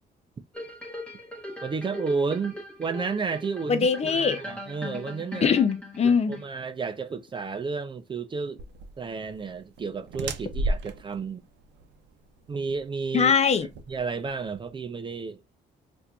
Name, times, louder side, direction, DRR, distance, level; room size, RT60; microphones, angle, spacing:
sound 1, 0.5-6.8 7.3-7.4, left 1 dB, 5° left, 1.1 m, -40 dB
voice 1, 1.6-5.5 6.3-8.6 9.0-11.4 12.5-13.3 13.9-15.4, right 4 dB, 25° right, 0.5 m, -32 dB
voice 2, 3.7-4.4 5.4-6.4 13.1-13.7, left 6 dB, 35° left, 0.5 m, -22 dB
sound 2, 8.6-14.7, right 1 dB, 85° right, 0.6 m, -35 dB
4.3 x 2.6 x 2.2 m
cardioid pair, 120°, 18 cm